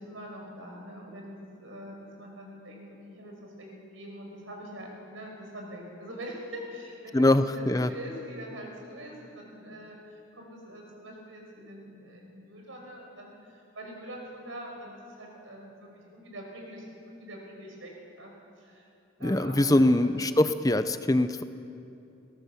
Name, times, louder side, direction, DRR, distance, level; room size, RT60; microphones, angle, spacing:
voice 1, 0.0-18.3 18.6-18.9 19.2-19.8 20.0-20.2, equal, 90° right, 0 dB, 5.7 m, -44 dB
voice 2, 7.1-7.9 19.2-21.4, left 1 dB, 20° left, 11 dB, 0.6 m, -23 dB
22.0 x 17.5 x 7.2 m, 2.7 s
head